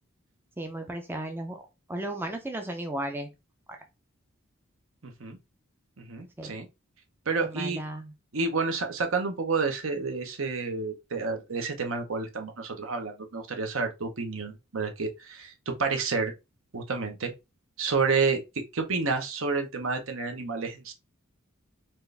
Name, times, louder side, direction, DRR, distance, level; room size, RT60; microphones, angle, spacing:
voice 1, 0.6-1.6 1.9-3.3 3.7-3.8 6.4-6.5 7.4-8.1, right 1 dB, 10° right, 0.5 m, -34 dB
voice 2, 5.0-5.4 6.0-6.7 7.3-7.8 8.3-16.3 16.7-17.3 17.8-18.4 18.7-20.9, right 4 dB, 65° right, 0.8 m, -29 dB
4.4 x 2.5 x 3.3 m
head